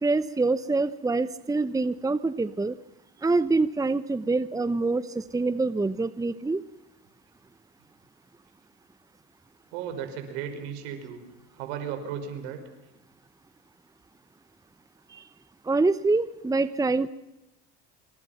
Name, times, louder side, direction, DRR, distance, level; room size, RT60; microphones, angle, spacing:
voice 1, 0.0-2.8 3.2-6.6 15.1-15.2 15.6-17.1, right 3 dB, 10° right, 15 dB, 1.0 m, -25 dB
voice 2, 9.7-11.2 11.6-12.6, right 8 dB, 75° right, 7 dB, 5.6 m, -35 dB
27.0 x 25.5 x 5.9 m, 0.99 s
hypercardioid pair, 75°, 34 cm